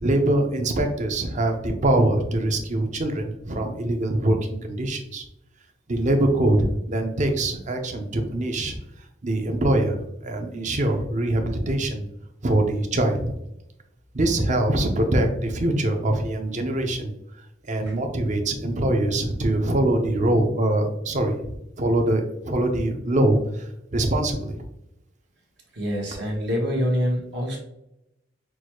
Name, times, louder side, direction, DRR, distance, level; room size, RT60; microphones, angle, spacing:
voice 1, 0.0-5.2 5.9-8.8 9.2-12.0 12.4-13.3 14.1-17.1 17.6-24.5, right 1 dB, 40° right, 5 dB, 0.6 m, -23 dB
voice 2, 25.7-27.6, equal, 65° right, -1 dB, 1.3 m, -25 dB
6.1 x 2.3 x 3.0 m, 0.84 s
head